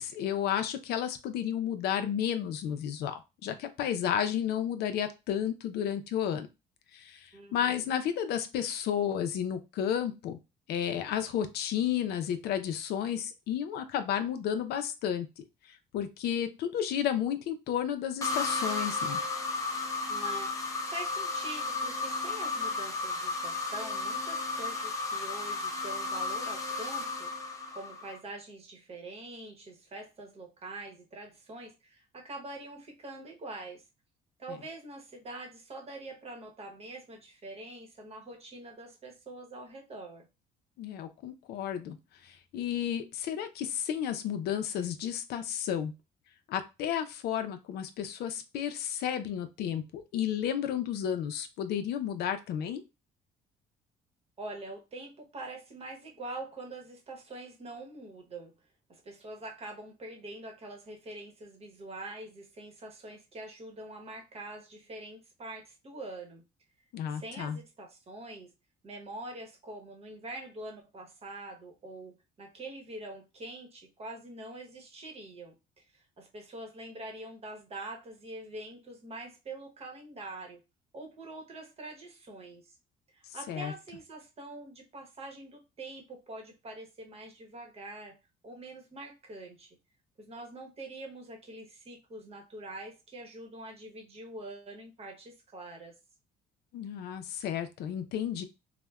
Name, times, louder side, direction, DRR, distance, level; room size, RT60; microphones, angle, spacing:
voice 1, 0.0-6.5 6.9-10.4 10.7-15.4 15.9-19.2 40.8-42.0 42.2-45.9 46.5-52.8 66.9-67.6 83.5-83.7 96.7-98.4, left 9 dB, 70° left, 8 dB, 0.5 m, -32 dB
voice 2, 7.3-7.9 20.1-33.8 34.4-40.3 54.4-58.5 58.9-66.4 67.1-68.5 68.8-80.6 80.9-82.8 83.1-88.2 88.4-89.7 90.2-95.9, right 2 dB, 35° right, 2 dB, 0.9 m, -44 dB
sound 1, 18.2-28.2, left 3 dB, 20° left, 0.6 m, -33 dB
3.2 x 2.1 x 2.2 m, 0.26 s
cardioid pair, 110°, 17 cm